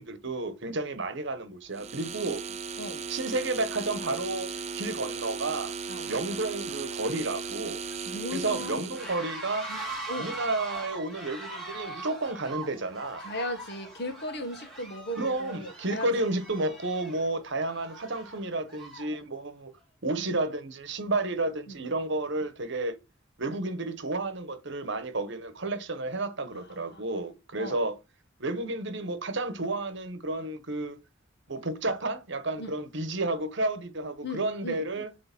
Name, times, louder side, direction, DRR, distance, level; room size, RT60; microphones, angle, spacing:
voice 1, 0.0-2.4 3.1-5.7 6.1-7.8 8.3-9.7 10.2-13.2 15.2-19.7 20.0-23.0 23.4-28.0 28.4-31.0 31.5-35.1, right 2 dB, 60° right, 1.1 m, -31 dB
sound 1, 1.7-9.2, right 5 dB, 35° right, 0.4 m, -37 dB
sound 2, 2.6-2.9 3.2-19.2, right 2 dB, ahead, 3.3 m, -43 dB
voice 2, 2.8-3.1 5.9-6.1 8.0-8.9 9.7-9.8 10.1-10.4 13.2-16.1 20.2-20.3 21.7-21.8 26.5-26.6 26.9-27.0 27.6-27.8 32.6-32.8 34.2-34.8, left 1 dB, 55° left, 1.5 m, -37 dB
7.8 x 3.3 x 5.9 m
head